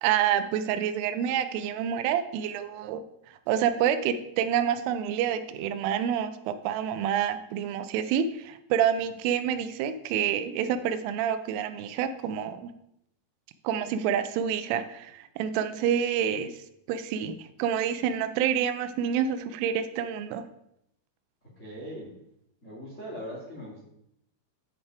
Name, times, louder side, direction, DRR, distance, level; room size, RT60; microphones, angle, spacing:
voice 1, 0.0-3.0 3.5-12.7 13.6-16.6 16.9-20.4, right 9 dB, 85° right, 9 dB, 3.1 m, -28 dB
voice 2, 21.4-22.1 22.6-23.8, equal, 40° left, -6 dB, 1.0 m, -40 dB
8.0 x 5.6 x 4.9 m, 0.78 s
omnidirectional pair, 5.7 m